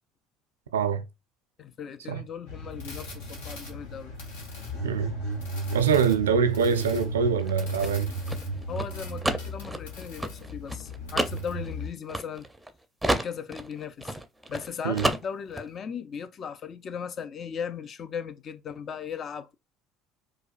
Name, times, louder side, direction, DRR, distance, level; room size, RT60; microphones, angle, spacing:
voice 1, 0.7-1.0 2.1-2.2 4.8-5.1 5.7-8.1 14.8-15.1, right 6 dB, 90° right, 0.4 m, -24 dB
voice 2, 1.6-4.1 8.7-12.5 13.1-14.1 14.5-19.5, left 7 dB, 45° left, 0.5 m, -37 dB
sound 1, 2.5-11.9, right 1 dB, 80° left, 1.1 m, -35 dB
sound 2, 7.4-12.7 13.0-14.7 15.0-15.7, right 1 dB, 5° right, 0.6 m, -30 dB
4.7 x 2.2 x 2.5 m
hypercardioid pair, 70°, 0 cm